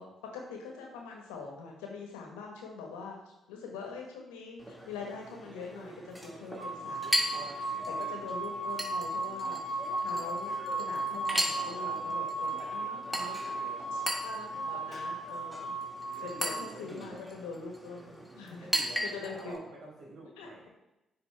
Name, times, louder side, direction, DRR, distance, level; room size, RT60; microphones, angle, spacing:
voice 1, 0.0-3.2 3.5-13.5 13.9-15.7 16.2-18.7 19.0-19.7 20.4-20.7, left 4 dB, 90° left, 1 dB, 1.2 m, -44 dB
Chink clink, 4.6-19.6, equal, 10° right, 2.1 m, -38 dB
sound 1, 6.6-16.7, right 2 dB, 50° right, 1.6 m, -36 dB
voice 2, 7.8-8.2 11.7-12.2 14.5-14.7 16.2-17.3 18.6-20.7, right 1 dB, 75° right, -4 dB, 2.3 m, -48 dB
9.5 x 3.7 x 3.4 m, 0.93 s
hypercardioid pair, 50°, 0 cm